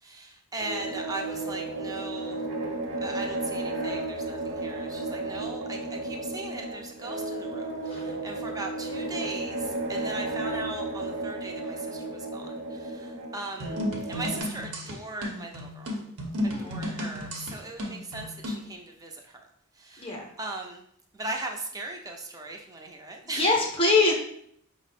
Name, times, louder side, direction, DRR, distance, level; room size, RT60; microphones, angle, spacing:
voice 1, 0.0-2.4 3.0-13.8 14.1-15.9 16.6-19.5 19.8-20.8 21.1-23.5, right 2 dB, 15° right, 2 dB, 0.5 m, -38 dB
sound 1, 0.6-14.4, right 2 dB, 50° right, 0.9 m, -33 dB
sound 2, 13.6-18.7, left 1 dB, 85° right, 0.9 m, -33 dB
voice 2, 16.5-17.0 20.0-20.3 23.3-24.1, left 3 dB, 25° left, -1 dB, 0.7 m, -24 dB
5.3 x 2.0 x 4.2 m, 0.68 s
head